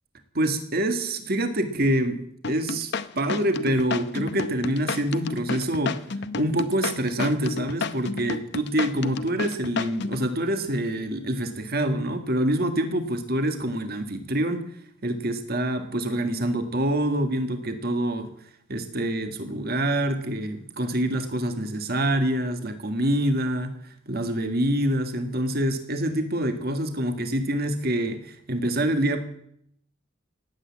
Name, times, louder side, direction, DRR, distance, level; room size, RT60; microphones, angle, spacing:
voice 1, 0.4-2.2 2.5-2.9 3.2-6.0 6.4-14.7 15.0-18.3 18.7-23.7 24.1-29.2, right 1 dB, 50° right, 7 dB, 1.8 m, -26 dB
sound 1, 2.4-10.3, left 4 dB, 55° left, 0.8 m, -31 dB
18.0 x 8.5 x 8.7 m, 0.70 s
head